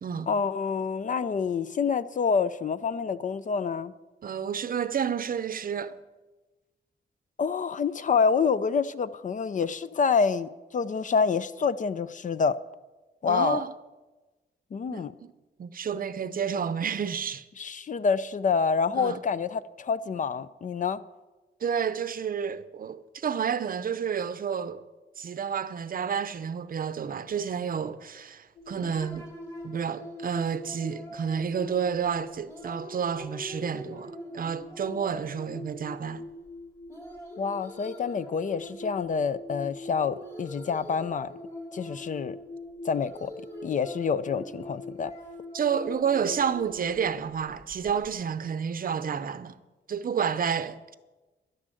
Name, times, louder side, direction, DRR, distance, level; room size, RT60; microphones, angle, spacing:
voice 1, 0.3-3.9 7.4-12.6 13.2-13.6 14.7-15.1 17.6-21.0 37.4-41.3 41.7-42.4 42.8-43.3 43.6-45.1, left 5 dB, 45° left, 0.4 m, -27 dB
voice 2, 4.2-6.0 13.3-13.7 14.9-15.3 15.6-17.4 18.9-19.2 21.6-24.8 25.2-29.3 29.6-36.2 45.5-49.6 49.9-50.9, right 7 dB, 50° right, 0.6 m, -30 dB
sound 1, 28.6-48.1, left 1 dB, 15° left, 2.8 m, -42 dB
11.5 x 9.9 x 7.6 m
wide cardioid pair, 160°, 19 cm